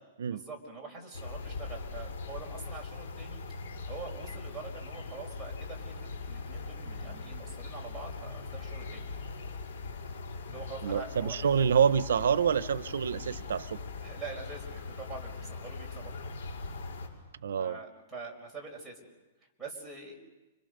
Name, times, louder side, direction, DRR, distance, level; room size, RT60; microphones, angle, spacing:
voice 1, 0.3-9.1 10.5-11.5 14.0-16.1 17.6-19.1 19.6-20.2, right 4 dB, 5° right, -3 dB, 5.1 m, -45 dB
sound 1, 1.1-17.1, left 4 dB, 75° left, 6.2 m, -41 dB
voice 2, 10.8-13.8 17.4-17.8, right 7 dB, 90° right, 15 dB, 0.8 m, -27 dB
30.0 x 25.5 x 6.8 m, 1.1 s
hypercardioid pair, 165°, 0 cm